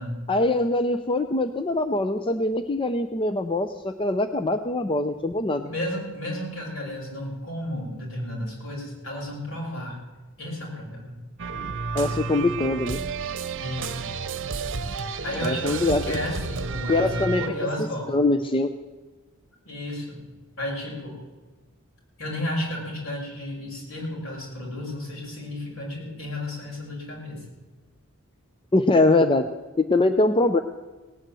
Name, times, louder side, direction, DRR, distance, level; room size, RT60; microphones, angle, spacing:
voice 1, 0.3-5.7 11.9-13.0 15.4-16.2 16.9-17.4 18.1-18.7 28.7-29.5 29.8-30.6, left 2 dB, 25° left, 9 dB, 0.6 m, -23 dB
voice 2, 5.6-10.0 10.4-11.2 13.6-14.1 14.9-15.0 15.2-18.3 19.7-20.2 20.6-21.2 22.2-27.4, left 1 dB, 65° left, -2 dB, 6.0 m, -33 dB
sound 1, 11.4-17.5, right 4 dB, 60° right, 0.9 m, -31 dB
18.0 x 9.6 x 7.6 m, 1.3 s
head